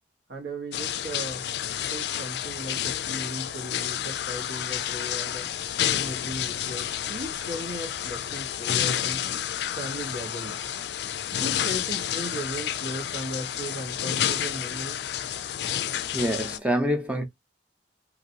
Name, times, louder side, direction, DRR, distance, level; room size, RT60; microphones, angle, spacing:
voice 1, 0.3-1.5 1.9-5.5 5.9-9.2 9.7-10.6 11.3-15.2, right 1 dB, 75° right, 1.3 m, -37 dB
sound 1, 0.7-16.6, left 10 dB, 65° left, 0.3 m, -30 dB
voice 2, 16.1-17.2, equal, 5° right, 0.8 m, -26 dB
2.8 x 2.8 x 2.7 m
head